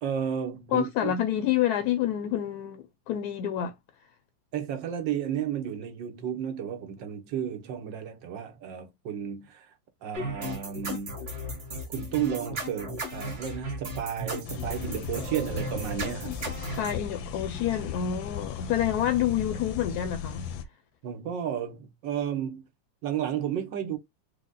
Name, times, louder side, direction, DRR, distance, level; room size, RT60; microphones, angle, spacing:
voice 1, 0.0-1.1 4.5-9.7 10.0-11.2 11.9-16.4 16.8-16.9 21.0-22.7 23.0-24.0, right 9 dB, 75° right, 1.5 m, -32 dB
voice 2, 0.7-3.7 16.8-20.5, left 10 dB, 70° left, 0.9 m, -28 dB
sound 1, 10.1-16.9, right 1 dB, 35° right, 1.6 m, -36 dB
sound 2, 14.4-20.6, left 8 dB, 90° left, 1.4 m, -37 dB
4.9 x 2.1 x 3.8 m
omnidirectional pair, 2.0 m